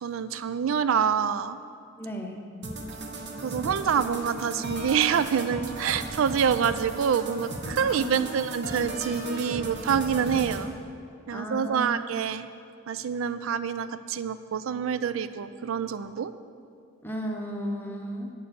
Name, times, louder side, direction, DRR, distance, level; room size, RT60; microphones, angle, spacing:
voice 1, 0.0-1.6 3.4-10.7 11.3-12.5 12.9-16.3, right 7 dB, 75° right, 14 dB, 0.4 m, -26 dB
voice 2, 2.0-2.4 7.8-8.3 11.3-11.9 17.0-18.3, equal, 10° left, 1 dB, 0.7 m, -34 dB
sound 1, 2.6-10.6, right 2 dB, 55° right, 0.8 m, -36 dB
8.5 x 4.6 x 6.9 m, 2.3 s
head